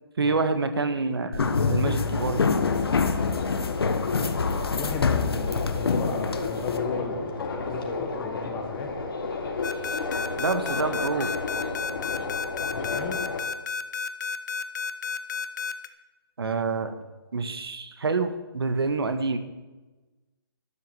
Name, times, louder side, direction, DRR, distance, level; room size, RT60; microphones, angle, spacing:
voice 1, 0.2-2.4 10.4-11.3 16.4-16.9 17.3-19.4, right 4 dB, 85° right, 9 dB, 1.7 m, -27 dB
sound 1, 1.3-6.8, left 4 dB, 85° left, 1.4 m, -26 dB
Subway metro underground, 2.0-13.4, left 4 dB, 70° left, 3.1 m, -32 dB
voice 2, 4.7-8.9 12.7-13.2, left 4 dB, 15° left, 4 dB, 1.4 m, -36 dB
sound 2, 9.6-15.9, left 6 dB, 50° left, 1.0 m, -31 dB
12.0 x 9.4 x 7.7 m, 1.2 s
hypercardioid pair, 165°, 12 cm